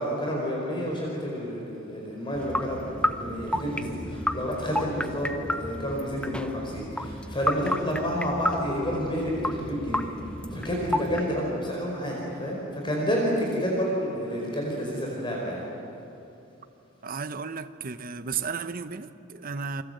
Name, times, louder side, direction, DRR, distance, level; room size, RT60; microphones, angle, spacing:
voice 1, 0.0-15.6, equal, 25° left, 4.8 m, -30 dB
sound 1, 2.3-11.2, left 1 dB, 5° left, 0.9 m, -32 dB
voice 2, 17.0-19.8, right 5 dB, 45° right, 0.9 m, -34 dB
29.0 x 24.0 x 8.0 m
head